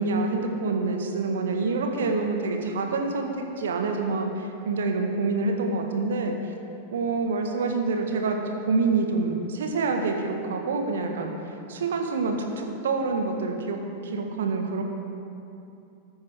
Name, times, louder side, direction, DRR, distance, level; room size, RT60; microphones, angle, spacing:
voice 1, 0.0-6.3 6.9-11.3 11.7-14.8, right 3 dB, 60° right, 3 dB, 1.5 m, -27 dB
20.0 x 8.9 x 3.6 m, 2.7 s
figure-of-eight pair, 90°, 0 cm